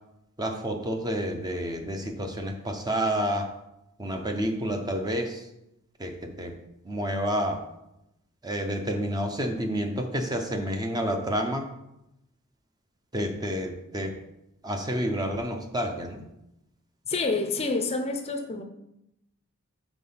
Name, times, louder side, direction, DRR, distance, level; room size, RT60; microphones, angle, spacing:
voice 1, 0.4-3.6 4.0-5.5 6.0-6.6 6.8-7.7 8.4-11.7 13.1-14.2 14.6-16.3, equal, 20° right, 4 dB, 0.6 m, -29 dB
voice 2, 17.1-18.6, left 3 dB, 30° left, 4 dB, 0.6 m, -28 dB
6.1 x 3.7 x 5.5 m, 0.85 s
head